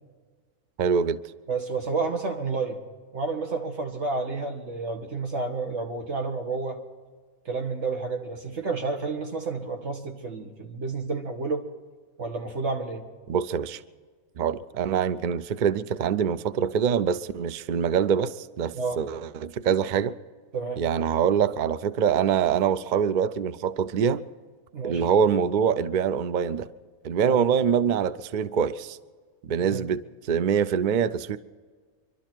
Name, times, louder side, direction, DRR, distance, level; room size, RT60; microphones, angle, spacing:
voice 1, 0.8-1.2 13.3-13.8 14.4-20.1 20.8-24.2 24.8-26.7 27.0-29.0 29.5-31.4, right 7 dB, 75° right, 0.4 m, -24 dB
voice 2, 1.5-2.8 3.1-6.8 7.5-11.7 12.2-13.0 18.7-19.0 20.5-20.8 24.7-25.1 27.2-27.5 29.7-29.9, right 4 dB, 50° right, 1.8 m, -30 dB
25.0 x 12.5 x 4.5 m
omnidirectional pair, 1.5 m